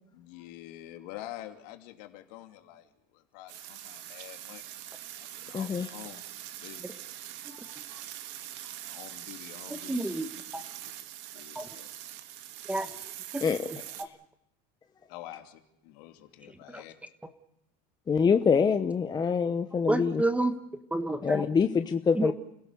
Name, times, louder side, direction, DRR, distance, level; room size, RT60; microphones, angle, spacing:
voice 1, 0.1-4.6 5.2-6.2 6.6-6.9 8.8-10.2 10.8-10.9 11.3-11.9 15.1-16.9, left 14 dB, 75° left, 6 dB, 2.9 m, -47 dB
sound 1, 3.5-14.0, right 12 dB, 60° right, 1.9 m, -43 dB
voice 2, 5.5-5.9 13.4-13.7 18.1-20.2 21.2-22.3, left 6 dB, 20° left, 8 dB, 0.9 m, -25 dB
voice 3, 9.7-10.3 11.5-11.7 12.7-12.9 13.3-13.4 13.7-14.1 16.7-16.8 19.9-20.5 20.9-21.5 22.1-22.3, right 2 dB, 5° right, 9 dB, 1.4 m, -29 dB
30.0 x 16.5 x 6.9 m, 0.81 s
supercardioid pair, 135°, 21 cm